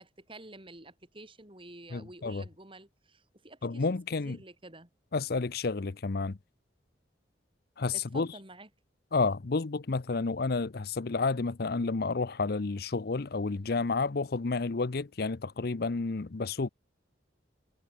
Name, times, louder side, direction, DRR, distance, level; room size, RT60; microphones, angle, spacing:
voice 1, 0.0-4.0 4.2-4.9 7.9-8.7, right 2 dB, 30° right, 6.1 m, -49 dB
voice 2, 1.9-2.4 3.6-4.4 5.1-6.4 7.8-8.3 9.1-16.7, left 3 dB, 55° left, 0.7 m, -30 dB
head